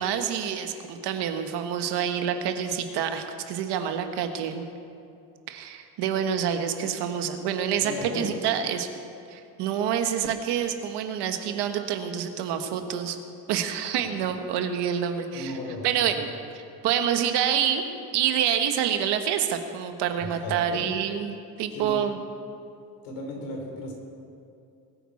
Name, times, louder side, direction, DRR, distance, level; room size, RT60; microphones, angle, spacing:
voice 1, 0.0-4.6 5.5-8.9 9.3-13.2 13.5-15.5 15.8-16.3 16.5-17.9 18.1-22.2, right 8 dB, 80° right, 6 dB, 1.3 m, -27 dB
voice 2, 7.8-8.4 14.0-14.1 15.3-16.2 20.2-20.9 21.7-22.0 23.0-23.9, left 2 dB, 90° left, 1 dB, 3.5 m, -35 dB
21.0 x 9.6 x 4.2 m, 2.5 s
cardioid pair, 180°, 40 cm